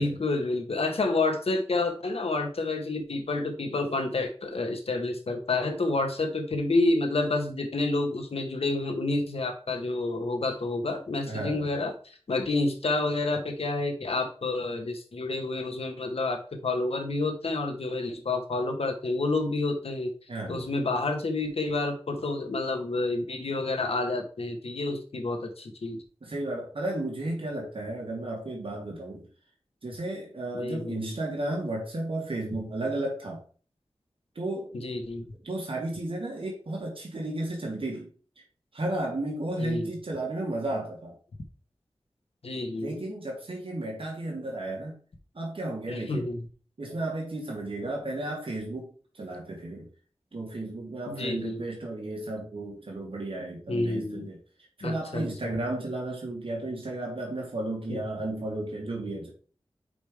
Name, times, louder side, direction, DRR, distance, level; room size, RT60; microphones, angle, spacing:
voice 1, 0.0-20.1 20.5-26.0 30.5-31.0 34.7-35.2 39.6-39.9 42.4-42.9 45.9-46.4 51.1-51.6 53.7-54.3 54.8-55.5 57.9-58.0, left 2 dB, 75° left, 4 dB, 1.3 m, -29 dB
voice 2, 11.3-11.7 20.3-20.6 26.2-29.3 29.8-33.4 34.4-34.7 35.4-38.1 38.7-41.2 42.7-45.0 45.3-46.3 46.8-49.9 50.3-54.4 54.8-59.3, right 2 dB, 60° right, -2 dB, 2.1 m, -33 dB
5.1 x 5.1 x 4.9 m, 0.40 s
wide cardioid pair, 80°, 10 cm